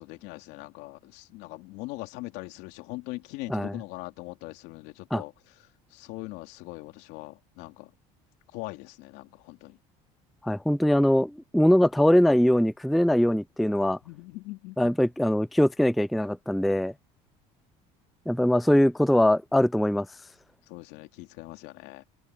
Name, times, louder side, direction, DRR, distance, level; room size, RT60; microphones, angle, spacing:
voice 1, 0.0-5.3 5.9-7.9 8.5-9.8 14.0-14.9 20.7-22.0, left 21 dB, 80° left, 2.9 m, -41 dB
voice 2, 10.4-14.0 14.8-16.9 18.3-20.1, left 1 dB, ahead, 0.3 m, -22 dB
supercardioid pair, 100°, 17 cm